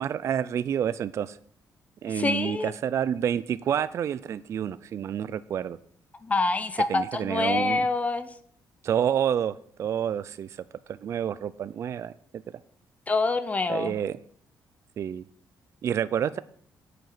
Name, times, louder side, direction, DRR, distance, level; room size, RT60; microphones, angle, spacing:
voice 1, 0.0-1.4 2.0-5.8 6.9-7.9 8.8-10.6 10.9-12.1 13.7-14.1 15.0-15.2 15.8-16.4, right 9 dB, 40° right, 15 dB, 0.3 m, -28 dB
voice 2, 2.1-2.7 6.2-8.3 13.1-13.9, left 3 dB, 20° left, 12 dB, 0.6 m, -26 dB
8.6 x 6.7 x 6.5 m, 0.62 s
cardioid pair, 175°, 7 cm